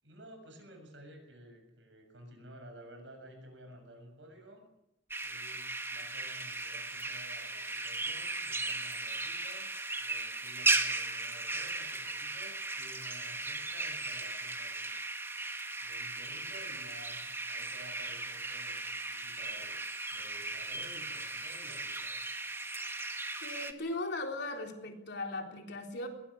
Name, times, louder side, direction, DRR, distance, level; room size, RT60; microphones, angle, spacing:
voice 1, 0.0-4.6 5.2-9.7 10.0-14.9 15.8-22.2, equal, 75° right, 5 dB, 7.0 m, -53 dB
sound 1, 5.1-23.7, right 2 dB, 15° right, 1.6 m, -37 dB
voice 2, 23.4-26.1, left 2 dB, 65° left, 3 dB, 4.1 m, -38 dB
21.5 x 18.5 x 8.6 m, 0.88 s
head